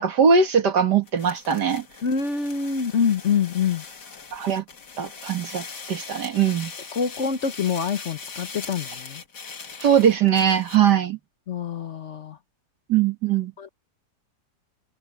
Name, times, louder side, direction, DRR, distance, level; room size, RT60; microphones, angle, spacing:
voice 1, 0.0-1.8 4.3-4.6 5.0-6.7 9.8-11.2 12.9-13.5, right 7 dB, 85° right, 2.4 m, -21 dB
sound 1, 1.1-10.9, left 5 dB, 85° left, 2.8 m, -40 dB
voice 2, 2.0-3.8 6.9-9.2 11.5-12.4 13.6-13.7, left 6 dB, 50° left, 1.2 m, -25 dB
open air
omnidirectional pair, 1.7 m